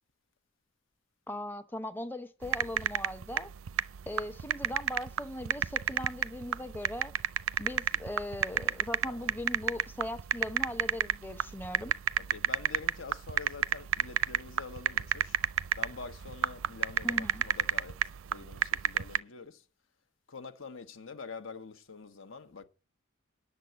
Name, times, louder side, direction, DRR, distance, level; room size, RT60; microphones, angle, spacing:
voice 1, 1.3-3.5 4.1-7.1 7.6-11.9 17.0-17.4, left 1 dB, 10° left, 0.7 m, -39 dB
sound 1, 2.4-19.2, right 10 dB, 85° right, 0.5 m, -30 dB
voice 2, 12.2-15.4 15.8-18.0 18.3-19.7 20.3-22.6, left 4 dB, 70° left, 1.2 m, -46 dB
10.0 x 6.8 x 7.9 m
head